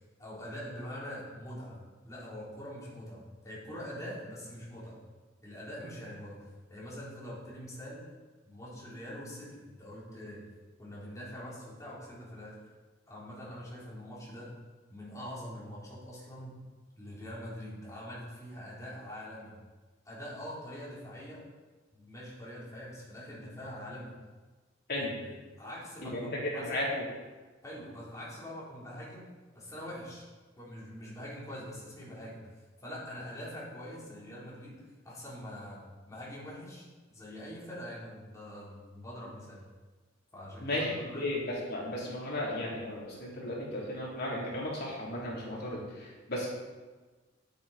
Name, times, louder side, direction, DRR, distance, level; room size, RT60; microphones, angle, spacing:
voice 1, 0.2-5.0 5.4-8.0 8.4-10.4 10.8-12.6 13.1-14.5 14.9-16.5 17.0-19.5 20.1-21.5 21.9-24.1 25.6-26.8 27.6-30.3 30.6-32.4 32.8-34.8 35.0-35.8 36.1-36.9 37.1-39.6 40.3-41.2, equal, 15° left, -7 dB, 3.9 m, -44 dB
voice 2, 26.0-27.0 40.6-46.5, left 1 dB, 55° left, -5 dB, 3.5 m, -35 dB
9.9 x 9.3 x 4.4 m, 1.3 s
head